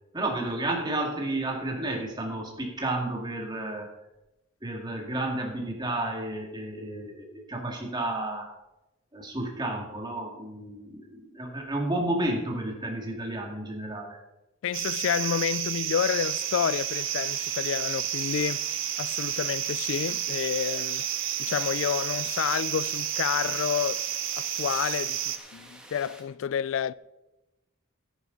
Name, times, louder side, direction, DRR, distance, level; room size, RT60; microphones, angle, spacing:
voice 1, 0.1-3.9 4.6-8.5 9.1-14.2, right 1 dB, 20° right, 2.2 m, -31 dB
voice 2, 14.6-18.7 19.0-21.1 21.4-24.1 24.4-26.9, left 8 dB, 65° left, 0.3 m, -29 dB
sound 1, 14.7-25.4, right 11 dB, 65° right, 0.9 m, -31 dB
sound 2, 16.2-26.2, right 1 dB, 5° right, 1.5 m, -50 dB
14.0 x 10.5 x 4.0 m
head